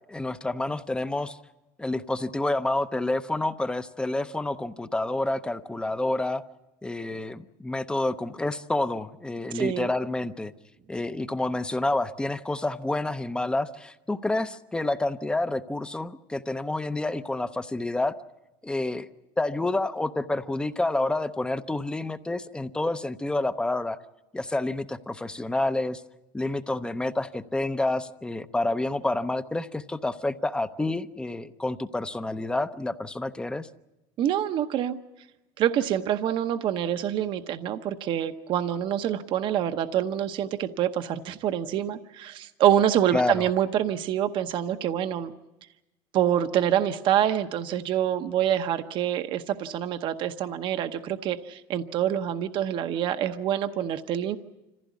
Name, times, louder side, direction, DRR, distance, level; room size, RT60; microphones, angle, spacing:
voice 1, 0.0-1.4 1.8-6.4 6.8-10.5 10.9-18.1 18.6-19.1 19.4-24.0 24.3-26.0 26.3-33.7 43.1-43.5, left 2 dB, 10° left, 11 dB, 0.7 m, -28 dB
voice 2, 9.5-9.9 34.2-35.0 35.6-45.3 46.1-54.4, right 10 dB, 50° right, 9 dB, 0.9 m, -26 dB
26.0 x 15.5 x 8.3 m, 0.99 s
cardioid pair, 130°, 11 cm